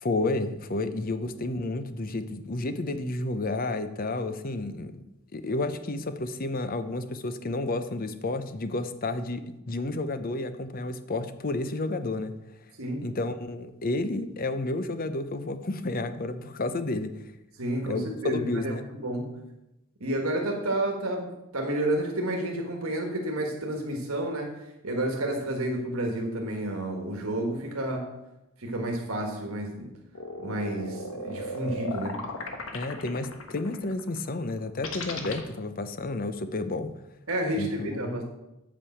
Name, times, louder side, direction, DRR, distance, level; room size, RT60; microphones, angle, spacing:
voice 1, 0.0-5.0 5.3-12.3 13.0-17.2 17.9-18.0 18.4-18.9 32.7-36.9 37.6-38.2, left 2 dB, 45° left, 10 dB, 0.7 m, -31 dB
voice 2, 12.8-13.1 17.6-19.4 20.0-28.1 28.6-29.9 30.4-32.2 37.3-38.2, right 1 dB, 80° right, 1 dB, 1.5 m, -30 dB
sound 1, 30.1-35.4, left 2 dB, 75° left, 1.3 m, -36 dB
8.3 x 5.3 x 7.1 m, 0.93 s
head